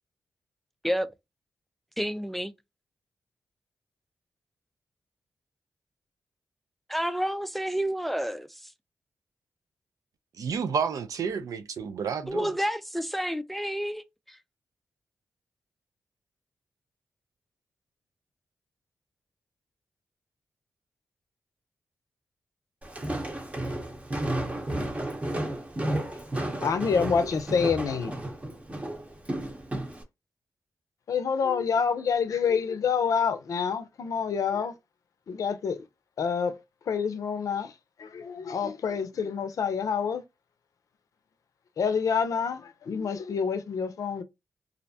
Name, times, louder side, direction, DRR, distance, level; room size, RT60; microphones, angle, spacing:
voice 1, 2.0-2.5 6.9-8.7 12.3-14.4, equal, ahead, 0.3 m, -30 dB
voice 2, 10.4-12.5, right 6 dB, 75° right, 0.4 m, -30 dB
Walk footsteps, 22.8-30.0, right 1 dB, 25° right, 0.8 m, -32 dB
voice 3, 26.6-28.2 31.1-34.7 35.3-35.8 36.2-36.6 36.9-37.7 38.0-40.2 41.8-44.2, left 6 dB, 75° left, 0.5 m, -27 dB
2.5 x 2.1 x 2.6 m
cardioid pair, 55°, 6 cm